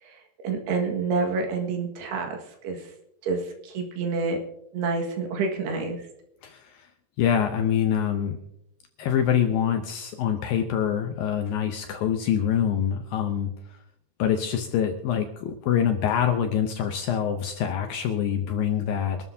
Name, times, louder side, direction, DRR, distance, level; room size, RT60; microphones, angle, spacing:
voice 1, 0.0-2.9 3.2-4.4 4.7-6.1, right 4 dB, 70° right, 3 dB, 3.7 m, -28 dB
voice 2, 6.4-6.9 7.2-8.4 9.0-13.5 14.2-19.2, left 9 dB, 75° left, 5 dB, 2.2 m, -25 dB
25.0 x 12.5 x 2.8 m, 0.79 s
omnidirectional pair, 5.0 m